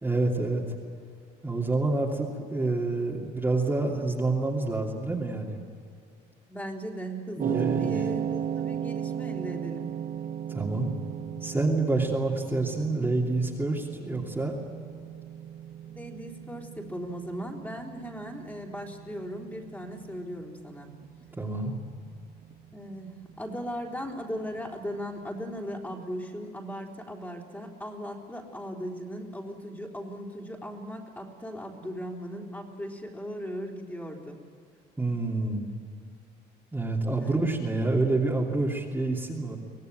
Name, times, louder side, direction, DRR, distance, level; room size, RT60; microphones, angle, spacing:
voice 1, 0.0-0.6 1.4-5.6 7.4-8.1 10.5-10.9 11.4-14.6 21.4-21.8 35.0-35.7 36.7-39.6, right 2 dB, 10° right, -3 dB, 2.9 m, -27 dB
voice 2, 6.5-9.9 15.9-20.9 22.7-34.4 37.2-37.3, equal, 10° left, 0 dB, 3.8 m, -38 dB
sound 1, 7.4-25.6, right 10 dB, 55° right, 1.2 m, -37 dB
24.5 x 17.5 x 9.2 m, 2.3 s
cardioid pair, 110°, 17 cm